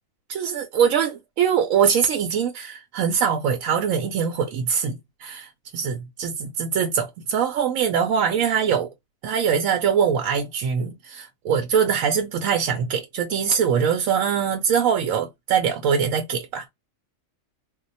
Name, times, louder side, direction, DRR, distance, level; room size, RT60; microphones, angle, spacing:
voice 1, 0.3-4.9 5.2-8.9 9.2-16.7, right 7 dB, 80° right, 1.0 m, -23 dB
2.4 x 2.2 x 3.9 m
omnidirectional pair, 1.4 m